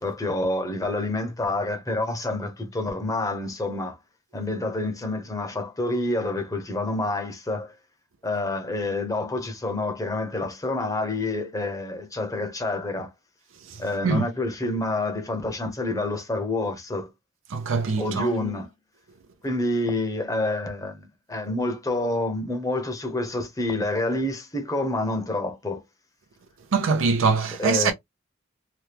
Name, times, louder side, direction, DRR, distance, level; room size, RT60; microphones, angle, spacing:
voice 1, 0.0-4.0 4.3-7.7 8.2-13.1 13.8-17.1 18.0-18.7 19.4-25.8 27.6-27.9, left 2 dB, 15° left, 0.8 m, -28 dB
voice 2, 13.7-14.3 17.5-18.3 26.7-27.9, right 4 dB, 85° right, 0.5 m, -23 dB
2.9 x 2.3 x 3.3 m
head